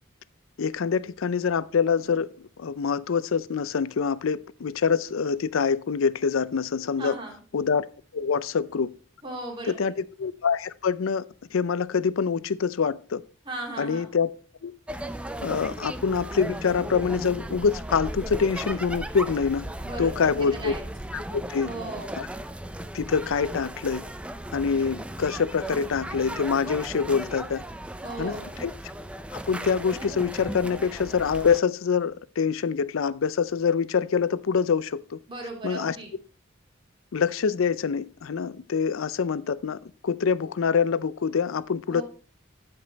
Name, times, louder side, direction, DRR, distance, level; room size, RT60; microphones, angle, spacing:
voice 1, 0.6-7.2 7.5-7.9 8.1-8.9 9.6-11.2 11.5-13.2 13.8-14.3 14.6-14.7 15.4-19.7 20.0-20.7 21.1-21.7 22.2-22.3 22.9-24.0 24.5-27.6 28.2-28.7 29.3-35.2 35.6-36.0 37.1-42.0, left 6 dB, 85° left, 0.5 m, -25 dB
voice 2, 7.0-7.3 9.2-9.9 13.4-14.1 19.8-20.8 21.6-22.2 28.0-28.6 35.3-36.1 41.9-42.0, right 2 dB, 25° right, 2.5 m, -37 dB
sound 1, 14.9-31.6, right 1 dB, 5° right, 0.4 m, -36 dB
12.0 x 5.3 x 4.0 m
head